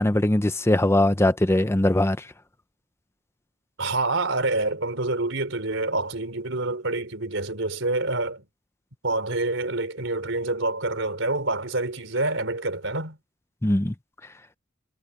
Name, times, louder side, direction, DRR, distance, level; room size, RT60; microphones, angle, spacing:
voice 1, 0.0-2.2 13.6-13.9, left 1 dB, 15° left, 0.7 m, -21 dB
voice 2, 3.8-8.5 9.0-13.2, right 2 dB, 75° right, 4.0 m, -27 dB
head